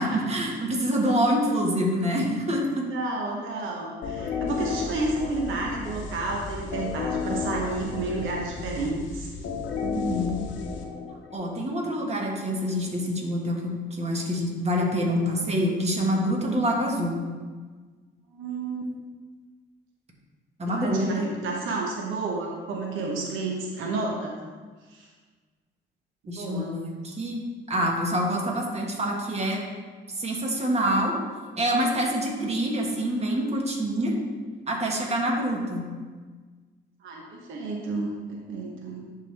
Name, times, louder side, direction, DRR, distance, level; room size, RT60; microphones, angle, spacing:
voice 1, 0.0-2.9 9.8-10.4 11.3-17.2 20.6-21.2 26.3-27.4 27.7-29.6 30.2-31.1 31.6-34.1 34.7-35.9, equal, 35° right, 0 dB, 1.4 m, -26 dB
voice 2, 2.7-9.3 18.3-18.9 20.7-24.4 24.9-25.1 26.4-26.8 37.0-39.1, right 3 dB, 80° right, 0 dB, 0.9 m, -31 dB
sound 1, 4.0-11.7, left 5 dB, 70° left, 0.7 m, -33 dB
10.5 x 3.7 x 3.3 m, 1.4 s
cardioid pair, 90°, 20 cm